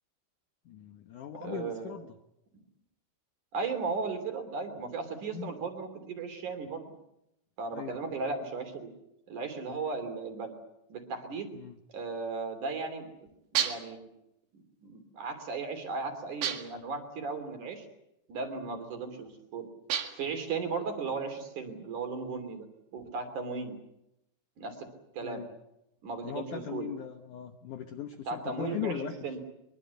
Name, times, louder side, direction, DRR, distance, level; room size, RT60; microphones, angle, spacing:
voice 1, 0.7-2.1 5.3-5.6 7.7-8.2 11.5-11.8 25.2-25.5 26.2-29.2, left 9 dB, 65° left, 6 dB, 2.1 m, -39 dB
voice 2, 1.4-2.0 3.5-6.9 7.6-8.9 9.3-10.5 10.9-11.5 11.9-13.1 13.5-14.1 14.8-17.9 18.3-19.7 20.2-22.7 22.9-23.8 24.6-24.9 25.2-25.4 26.0-26.9 28.3-29.4, right 4 dB, 50° right, 7 dB, 4.2 m, -36 dB
sound 1, 13.6-14.0 16.4-16.9 19.9-20.4, right 9 dB, 70° right, 3.9 m, -31 dB
23.5 x 23.5 x 8.3 m, 0.85 s
omnidirectional pair, 5.0 m